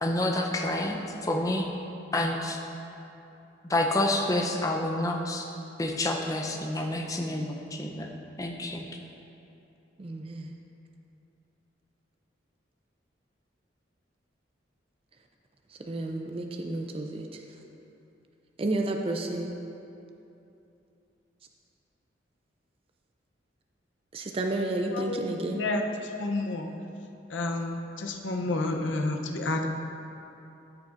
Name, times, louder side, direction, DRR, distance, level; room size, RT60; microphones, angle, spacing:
voice 1, 0.0-1.7 2.1-2.6 3.6-5.4 5.8-8.1 8.4-8.9, left 1 dB, 20° left, 1 dB, 0.6 m, -28 dB
voice 2, 10.0-10.5 15.9-17.3 18.6-19.5 24.1-25.6, right 2 dB, 30° right, 3 dB, 0.4 m, -31 dB
voice 3, 24.9-26.7 27.3-29.7, left 2 dB, 90° left, 3 dB, 0.7 m, -30 dB
13.5 x 6.0 x 2.5 m, 2.9 s
head